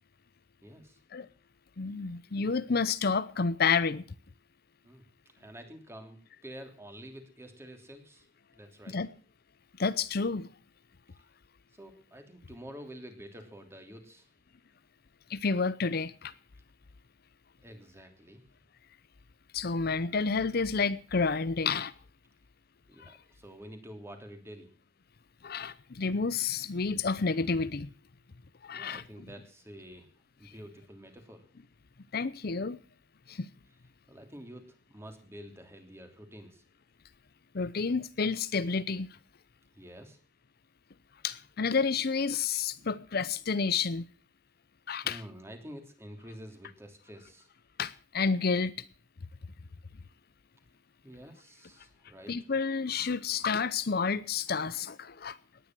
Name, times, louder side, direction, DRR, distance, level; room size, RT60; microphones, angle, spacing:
voice 1, 0.6-1.0 4.8-5.1 5.4-8.3 8.5-9.0 11.7-14.3 17.6-18.4 22.9-24.7 28.7-30.1 30.4-31.4 33.3-33.4 34.1-36.6 39.7-40.2 45.0-47.5 51.0-52.3, equal, 15° right, 3.1 m, -48 dB
voice 2, 1.8-4.0 8.9-9.1 9.8-10.5 15.3-16.3 19.5-21.9 23.0-23.2 25.4-27.9 28.6-29.0 32.1-32.8 33.3-33.5 37.5-39.1 41.2-44.1 44.9-45.2 47.8-48.9 52.3-55.4, left 5 dB, 60° left, 0.7 m, -30 dB
18.5 x 10.5 x 6.1 m
head